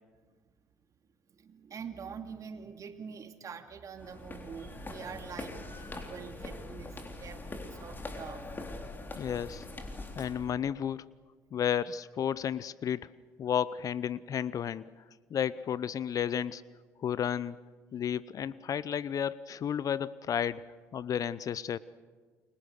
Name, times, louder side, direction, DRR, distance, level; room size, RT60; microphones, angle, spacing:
voice 1, 1.3-8.5, right 6 dB, 45° right, 6 dB, 2.7 m, -45 dB
sound 1, 4.0-10.5, left 2 dB, 25° left, 3.6 m, -42 dB
voice 2, 9.2-9.6 10.1-11.1 11.5-13.1 13.4-14.8 15.3-16.6 17.0-17.6 17.9-20.6 20.9-21.8, left 8 dB, 50° left, 19 dB, 0.7 m, -32 dB
29.5 x 23.5 x 6.6 m, 1.4 s
hypercardioid pair, 60°, 8 cm